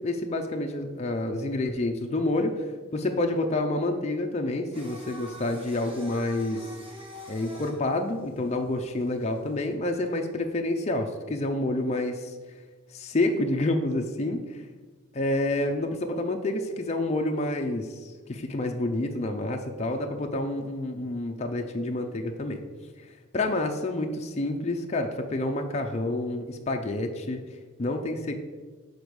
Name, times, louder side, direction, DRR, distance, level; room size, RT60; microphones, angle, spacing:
voice 1, 0.0-2.7 2.9-6.8 7.3-12.3 12.9-14.6 15.1-22.6 23.3-27.4 27.8-28.3, left 2 dB, 30° left, 4 dB, 0.5 m, -28 dB
Singing, 4.7-9.7, equal, 25° right, 1.4 m, -45 dB
6.8 x 4.3 x 4.7 m, 1.4 s
head